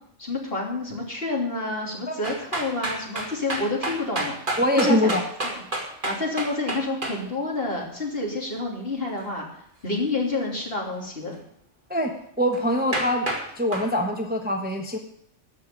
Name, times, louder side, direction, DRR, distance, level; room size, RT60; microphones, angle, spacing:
voice 1, 0.2-4.4 4.8-5.1 5.4-5.5 6.0-9.4 9.8-11.4, left 2 dB, 50° left, -1 dB, 3.2 m, -28 dB
sound 1, 2.2-7.2 12.5-12.6 12.9-13.4 13.7-13.9, right 2 dB, 40° right, 2.3 m, -29 dB
voice 2, 4.6-5.2 11.9-12.1 12.4-13.3 13.6-15.0, equal, 10° right, 3 dB, 1.0 m, -23 dB
13.0 x 5.7 x 9.0 m, 0.70 s
omnidirectional pair, 1.3 m